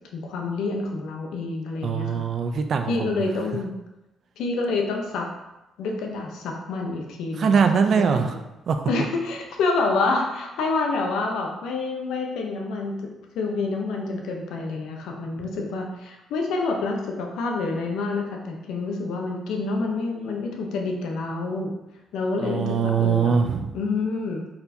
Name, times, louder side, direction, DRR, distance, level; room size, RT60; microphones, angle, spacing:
voice 1, 0.1-2.2 2.9-3.7 4.4-5.3 5.8-7.6 8.0-8.2 8.9-21.7 22.1-23.3 23.7-24.4, left 3 dB, 85° left, 1 dB, 0.7 m, -28 dB
voice 2, 1.8-3.2 7.4-8.4 8.7-8.9 22.4-23.7, right 6 dB, 60° right, 7 dB, 0.5 m, -22 dB
4.3 x 4.2 x 2.7 m, 0.97 s
cardioid pair, 90°, 0 cm